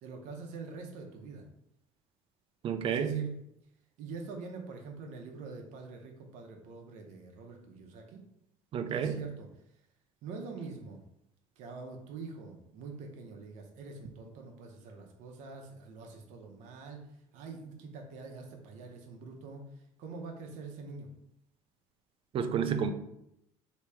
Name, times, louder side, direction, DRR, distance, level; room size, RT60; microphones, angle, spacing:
voice 1, 0.0-1.4 2.8-3.3 4.0-8.2 8.9-9.5 10.2-11.0 11.6-17.0 17.3-19.6 20.0-21.1, right 4 dB, 65° right, 2 dB, 0.8 m, -45 dB
voice 2, 2.6-3.3 8.7-9.2 22.3-22.9, right 7 dB, 45° right, 8 dB, 0.4 m, -30 dB
3.0 x 2.8 x 3.4 m, 0.78 s
supercardioid pair, 100°, 13 cm